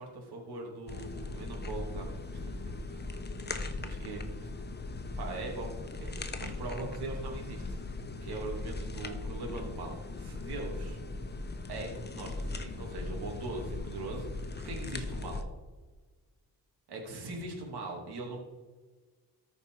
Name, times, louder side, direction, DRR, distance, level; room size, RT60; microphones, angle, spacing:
voice 1, 0.0-3.1 3.4-4.6 5.2-7.8 8.2-11.0 11.7-15.4 16.9-18.4, right 2 dB, 80° right, 0 dB, 2.8 m, -41 dB
sound 1, 0.9-15.4, left 2 dB, 25° left, 0.9 m, -39 dB
14.0 x 5.3 x 4.8 m, 1.3 s
cardioid pair, 95°, 38 cm